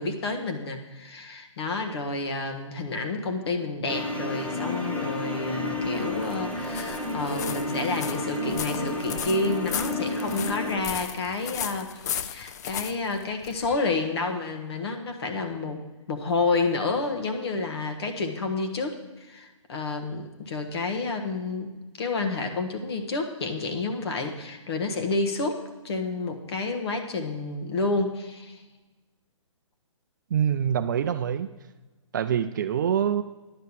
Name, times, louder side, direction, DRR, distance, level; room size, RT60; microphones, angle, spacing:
voice 1, 0.0-15.8 16.1-21.7 22.0-28.6, left 3 dB, 50° left, 5 dB, 1.5 m, -30 dB
sound 1, 3.9-10.8, left 2 dB, 10° left, 0.8 m, -31 dB
sound 2, 5.7-13.9, left 8 dB, 30° left, 0.4 m, -36 dB
voice 2, 30.3-31.5 32.1-33.2, right 9 dB, 35° right, 10 dB, 0.4 m, -25 dB
10.5 x 5.5 x 8.1 m, 1.2 s
hypercardioid pair, 155°, 17 cm